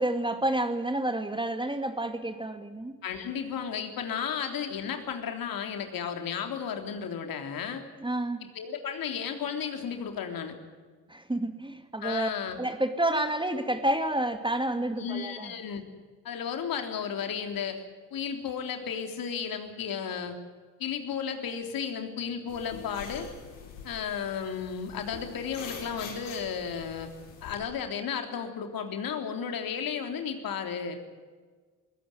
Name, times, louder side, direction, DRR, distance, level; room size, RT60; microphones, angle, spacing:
voice 1, 0.0-2.9 8.0-8.5 11.1-12.3 12.6-15.5, right 1 dB, 10° right, 8 dB, 2.3 m, -29 dB
voice 2, 3.0-7.8 8.4-10.6 12.0-12.6 15.0-15.8 16.2-17.8 18.1-20.4 20.8-23.3 23.8-27.1 27.4-31.0, left 7 dB, 55° left, 6 dB, 3.5 m, -33 dB
sound 1, 22.5-27.5, left 5 dB, 85° left, 5.1 m, -45 dB
22.5 x 17.0 x 9.5 m, 1.5 s
hypercardioid pair, 55°, 41 cm